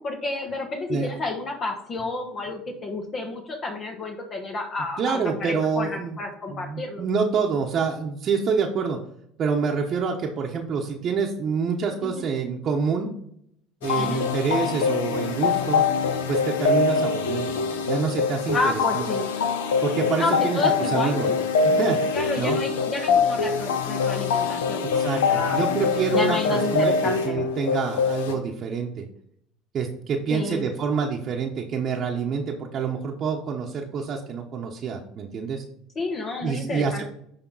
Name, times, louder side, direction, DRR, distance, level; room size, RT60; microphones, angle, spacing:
voice 1, 0.0-7.0 12.0-12.3 13.9-14.2 18.5-19.3 20.1-21.4 22.1-25.6 26.1-27.4 30.3-30.7 35.9-37.0, left 2 dB, 40° left, 3 dB, 1.3 m, -30 dB
voice 2, 5.0-6.2 6.5-9.0 9.4-13.1 13.8-15.8 16.3-17.6 17.8-19.0 19.8-21.3 21.6-22.1 22.4-22.6 24.9-26.9 27.2-29.1 29.7-35.6 36.4-37.0, right 5 dB, 45° right, -2 dB, 1.0 m, -27 dB
sound 1, 13.8-28.4, left 5 dB, 90° left, 0.8 m, -24 dB
10.5 x 3.6 x 4.0 m, 0.69 s
hypercardioid pair, 85°, 0 cm